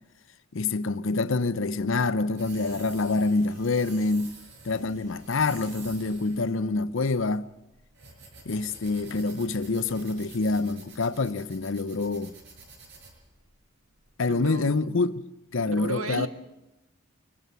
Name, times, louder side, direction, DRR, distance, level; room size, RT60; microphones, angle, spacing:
voice 1, 0.5-4.3 4.6-7.5 8.5-12.3 14.2-15.2 15.5-16.3, left 3 dB, 65° left, 0.7 m, -26 dB
sound 1, 1.5-14.3, right 3 dB, 55° right, 6.0 m, -49 dB
voice 2, 14.3-14.9 15.7-16.3, right 3 dB, 75° right, 1.7 m, -34 dB
23.0 x 12.5 x 9.5 m
head